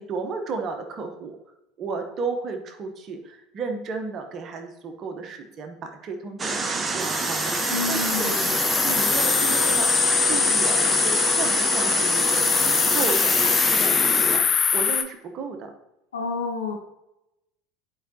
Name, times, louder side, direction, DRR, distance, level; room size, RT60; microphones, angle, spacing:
voice 1, 0.0-1.4 1.8-8.3 8.8-9.9 10.3-15.7, right 4 dB, 45° right, 5 dB, 1.0 m, -33 dB
sound 1, 6.4-14.4, right 3 dB, 25° right, 0.9 m, -27 dB
sound 2, 7.0-15.0, left 7 dB, 35° left, 0.6 m, -22 dB
voice 2, 7.7-8.6 16.1-16.7, left 4 dB, 80° left, 2 dB, 1.2 m, -29 dB
10.5 x 4.8 x 2.9 m, 0.91 s
figure-of-eight pair, 70°, 0 cm